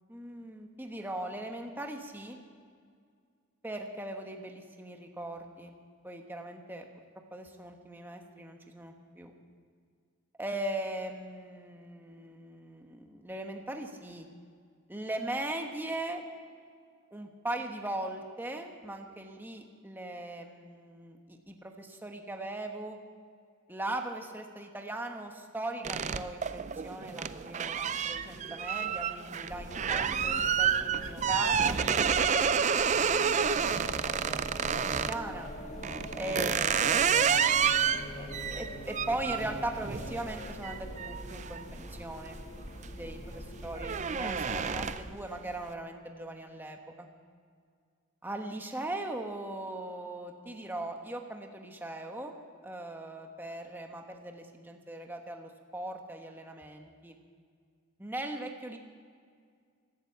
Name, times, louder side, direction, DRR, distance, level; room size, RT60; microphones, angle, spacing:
voice 1, 0.1-2.4 3.6-5.8 6.0-7.0 7.3-9.3 10.4-14.3 14.9-16.2 17.1-23.0 23.7-31.8 32.5-35.5 36.1-42.4 42.9-47.1 48.2-52.3 52.6-57.2 58.0-58.8, right 1 dB, 10° right, 3 dB, 1.2 m, -39 dB
sound 1, 25.8-35.2 35.8-42.3 42.7-43.1 43.4-45.2, right 7 dB, 35° right, 0.4 m, -29 dB
sound 2, 29.5-45.0, left 1 dB, 35° left, 1.7 m, -43 dB
16.0 x 12.5 x 7.0 m, 2.1 s
head